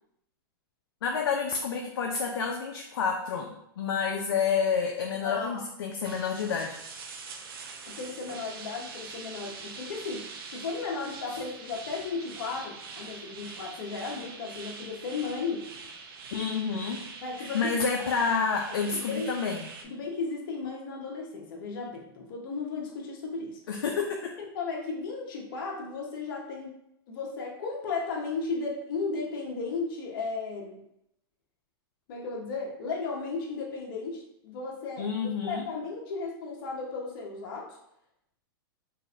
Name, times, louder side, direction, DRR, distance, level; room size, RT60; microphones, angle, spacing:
voice 1, 1.0-6.8 16.3-17.0 17.4-19.7 23.7-24.3 35.0-35.6, left 5 dB, 85° left, 1 dB, 0.5 m, -29 dB
voice 2, 5.2-5.6 7.9-15.7 17.2-17.8 18.9-19.3 19.8-23.6 24.4-26.7 27.1-30.8 32.1-35.1 35.4-37.8, left 4 dB, 60° left, -1 dB, 0.9 m, -35 dB
sound 1, 6.0-19.8, right 4 dB, 70° right, 0.6 m, -44 dB
3.9 x 2.5 x 2.5 m, 0.77 s
hypercardioid pair, 125°, 13 cm